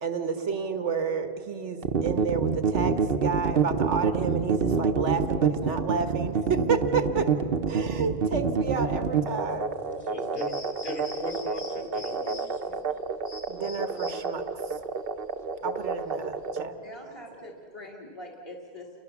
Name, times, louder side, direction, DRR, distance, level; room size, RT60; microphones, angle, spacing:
voice 1, 0.0-7.3 7.7-9.7 13.5-14.4 15.6-16.7, right 5 dB, 90° right, 8 dB, 1.7 m, -30 dB
sound 1, 1.8-16.6, right 5 dB, 55° right, 1.1 m, -27 dB
voice 2, 10.0-10.5 10.8-12.8 17.3-17.4, equal, 45° left, 2 dB, 4.2 m, -38 dB
sound 2, 10.4-16.5, left 2 dB, 70° left, 2.6 m, -46 dB
voice 3, 16.8-18.9, left 1 dB, 20° left, 0 dB, 1.9 m, -43 dB
29.5 x 23.5 x 7.2 m, 2.9 s
omnidirectional pair, 1.2 m